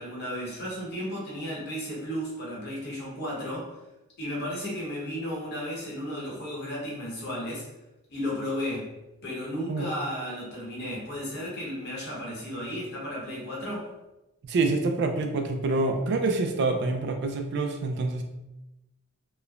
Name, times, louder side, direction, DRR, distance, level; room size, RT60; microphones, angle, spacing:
voice 1, 0.0-3.8 4.2-7.6 8.1-8.9 9.2-13.9, equal, 50° left, -5 dB, 1.0 m, -34 dB
voice 2, 14.4-18.2, right 3 dB, 50° right, 5 dB, 0.3 m, -26 dB
3.0 x 2.0 x 2.4 m, 0.98 s
head